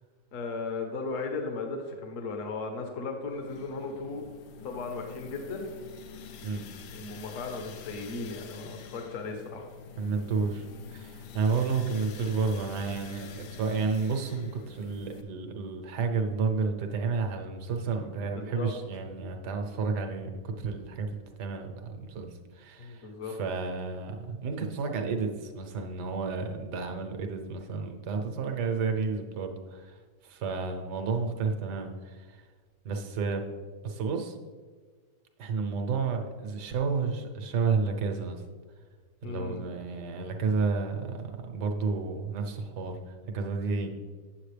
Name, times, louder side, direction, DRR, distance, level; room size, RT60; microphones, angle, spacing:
voice 1, 0.3-4.3 4.6-5.7 6.9-9.7 18.3-18.7 22.8-23.3 39.2-39.6, left 3 dB, 50° left, 4 dB, 1.3 m, -36 dB
sound 1, 3.3-15.2, left 7 dB, 70° left, 0.9 m, -47 dB
voice 2, 10.0-22.3 22.5-30.0 30.2-32.4 32.8-33.5 33.8-34.3 35.4-38.4 39.2-43.0 43.3-43.9, right 4 dB, 70° right, 4 dB, 1.4 m, -31 dB
8.6 x 7.3 x 3.3 m, 1.5 s
omnidirectional pair, 1.9 m